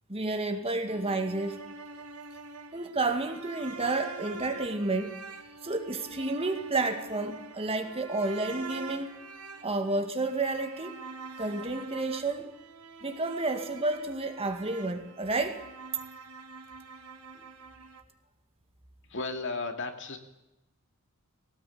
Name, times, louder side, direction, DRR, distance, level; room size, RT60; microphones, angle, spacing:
voice 1, 0.1-1.6 2.7-9.1 9.6-11.0 11.4-12.5 13.0-15.6 17.4-17.5, right 2 dB, 25° right, 6 dB, 2.1 m, -31 dB
sound 1, 0.9-18.0, right 3 dB, 85° right, 2.4 m, -45 dB
voice 2, 19.0-20.2, left 3 dB, 55° left, 6 dB, 2.4 m, -34 dB
20.0 x 18.0 x 8.6 m, 0.93 s
head